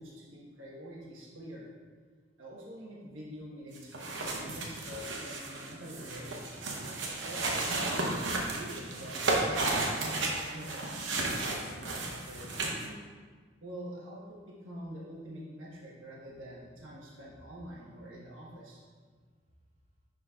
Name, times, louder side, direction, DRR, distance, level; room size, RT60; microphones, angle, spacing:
voice 1, 0.0-1.7 2.4-6.5 7.2-8.0 8.5-13.0 13.6-18.8, equal, 80° right, -5 dB, 1.3 m, -46 dB
sound 1, 3.7-12.8, right 2 dB, 65° right, 0.9 m, -33 dB
11.0 x 4.1 x 2.4 m, 1.5 s
head